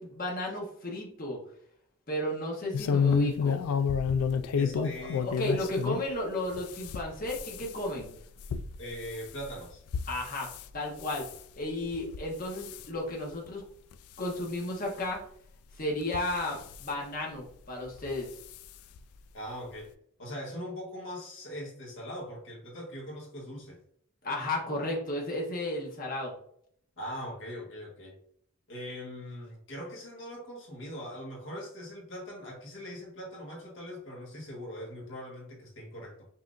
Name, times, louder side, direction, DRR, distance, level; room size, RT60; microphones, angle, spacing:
voice 1, 0.0-1.4 2.1-3.6 5.0-8.1 10.1-10.5 10.7-11.3 11.6-13.6 14.2-15.2 15.7-18.3 24.2-26.3, left 1 dB, 40° left, -1 dB, 1.1 m, -33 dB
sound 1, 2.7-6.1 6.5-10.6 11.0-11.4 11.9-12.3 12.6-12.9 13.5-13.6 13.9-14.0 15.2-15.3 16.0-16.8 18.0-18.2 18.5-18.6 19.0-19.1, left 6 dB, 85° left, 0.3 m, -30 dB
voice 2, 4.5-5.3 8.8-9.8 19.3-19.9 20.2-23.8 27.0-28.2 28.7-36.3, equal, 60° left, -2 dB, 1.4 m, -41 dB
5.6 x 2.8 x 2.5 m, 0.66 s
head